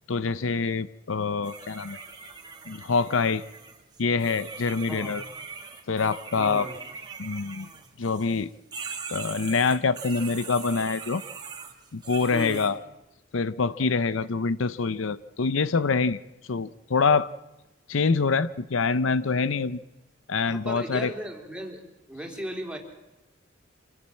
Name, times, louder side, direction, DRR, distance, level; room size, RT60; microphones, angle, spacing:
voice 1, 0.1-2.0 2.7-3.4 4.0-5.2 5.9-6.7 7.2-7.7 8.0-8.5 9.1-11.2 11.9-12.8 13.3-16.2 16.5-17.3 17.9-19.8 20.3-21.1, left 4 dB, 80° left, 16 dB, 0.7 m, -25 dB
sound 1, 1.4-8.4 8.7-12.7, right 5 dB, 20° right, 2.0 m, -41 dB
voice 2, 4.9-5.2 6.3-6.8 12.3-12.6 20.5-21.8 22.1-22.8, equal, 5° right, 1 dB, 3.2 m, -36 dB
26.0 x 16.0 x 7.5 m, 1.0 s
head